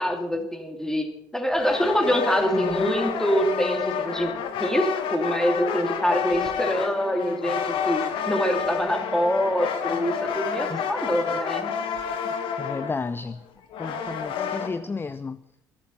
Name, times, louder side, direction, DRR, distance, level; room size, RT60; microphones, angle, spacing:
voice 1, 0.0-4.3 4.6-11.7, equal, 5° left, 3.2 m, -25 dB
sound 1, 1.5-14.7, left 7 dB, 55° left, 1.9 m, -29 dB
voice 2, 2.5-2.9 10.7-10.8 12.6-13.4 13.8-15.4, left 4 dB, 20° left, 0.6 m, -32 dB
21.5 x 14.5 x 4.3 m
figure-of-eight pair, 55°, 10 cm